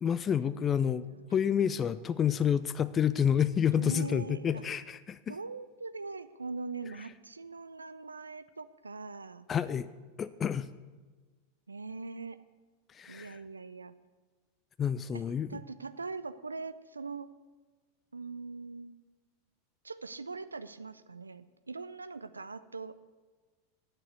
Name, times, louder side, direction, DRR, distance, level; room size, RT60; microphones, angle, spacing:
voice 1, 0.0-1.0 1.3-5.4 9.5-9.9 10.2-10.7 12.9-13.4 14.8-15.5, left 8 dB, 25° left, 15 dB, 0.3 m, -29 dB
voice 2, 0.6-1.4 3.7-4.6 5.3-9.5 11.7-12.4 13.1-13.9 15.1-15.2 15.5-17.3 18.1-19.1 19.8-22.9, right 4 dB, 80° right, 13 dB, 0.3 m, -42 dB
9.0 x 6.7 x 8.1 m, 1.3 s
figure-of-eight pair, 90°, 0 cm